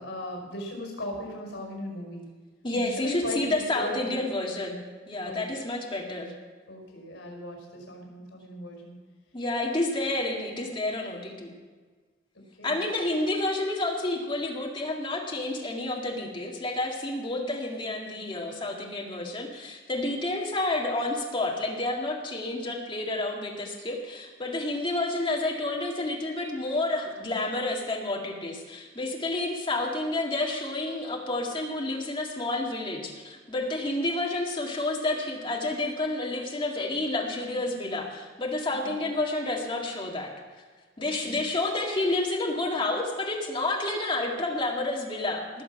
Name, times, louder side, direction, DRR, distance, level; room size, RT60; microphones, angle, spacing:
voice 1, 0.0-2.3 2.7-4.2 5.2-5.6 6.7-9.0 12.3-12.8 38.7-39.0 41.0-41.5, left 1 dB, 70° left, 1 dB, 5.3 m, -38 dB
voice 2, 2.6-6.3 9.3-11.5 12.6-40.3 41.0-45.6, left 2 dB, 25° left, -1 dB, 2.0 m, -30 dB
19.5 x 7.3 x 5.7 m, 1.4 s
head